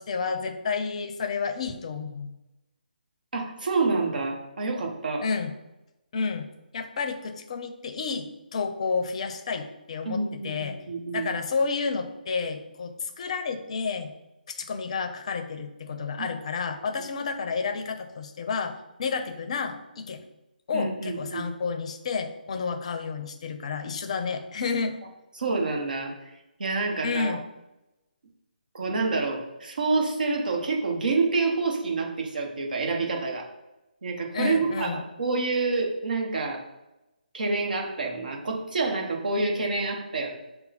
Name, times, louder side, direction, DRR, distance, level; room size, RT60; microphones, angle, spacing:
voice 1, 0.0-2.3 5.2-5.5 6.1-6.5 6.7-10.8 11.1-14.1 14.5-18.7 19.0-20.3 20.7-25.0 27.0-27.4 34.3-35.1, left 5 dB, 40° left, 7 dB, 0.5 m, -30 dB
voice 2, 3.3-5.3 10.0-11.3 16.2-16.3 20.7-21.5 25.4-26.1 26.6-27.4 28.7-33.5 34.0-36.6 37.3-40.3, right 3 dB, 60° right, 1 dB, 1.1 m, -28 dB
5.5 x 2.2 x 4.0 m, 0.96 s
figure-of-eight pair, 150°, 5 cm